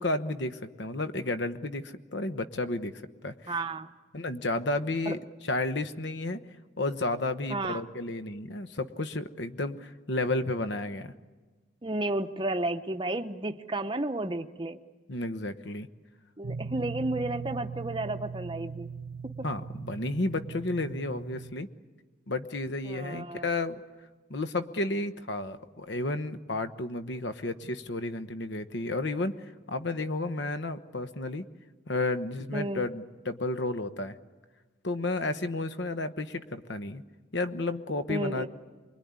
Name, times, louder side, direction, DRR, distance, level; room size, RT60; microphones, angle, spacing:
voice 1, 0.0-2.9 3.2-3.5 4.1-6.4 6.8-11.1 15.1-15.9 19.4-21.7 22.3-23.8 24.3-31.5 31.9-34.1 34.8-37.0 37.3-38.5, left 2 dB, 60° left, 10 dB, 1.1 m, -32 dB
voice 2, 3.5-3.9 5.1-5.2 7.5-7.8 11.8-14.8 16.4-18.9 22.9-23.5 32.5-32.9 38.1-38.5, right 2 dB, 25° right, 7 dB, 0.8 m, -32 dB
sound 1, 16.4-21.5, right 5 dB, 85° right, 1.0 m, -39 dB
24.5 x 22.5 x 9.6 m, 1.3 s
head